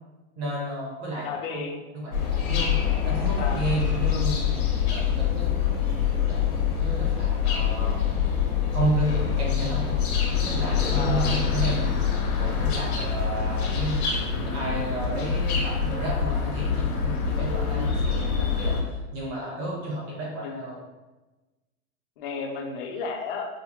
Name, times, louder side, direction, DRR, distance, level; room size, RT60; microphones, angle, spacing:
voice 1, 0.4-1.6 2.0-2.1 2.4-2.8 3.0-4.3 4.9-5.5 6.3-6.4 6.8-8.0 8.7-9.9 10.3-11.9 12.4-14.0 14.3-20.8, right 2 dB, 30° right, -5 dB, 1.3 m, -31 dB
voice 2, 1.2-1.9 3.4-3.6 10.9-11.4 15.5-15.7 20.4-20.6 22.2-23.5, left 5 dB, 40° left, 1 dB, 0.5 m, -33 dB
sound 1, 2.1-18.8, left 7 dB, 85° left, 1.1 m, -25 dB
4.9 x 2.1 x 3.0 m, 1.2 s
supercardioid pair, 160°, 42 cm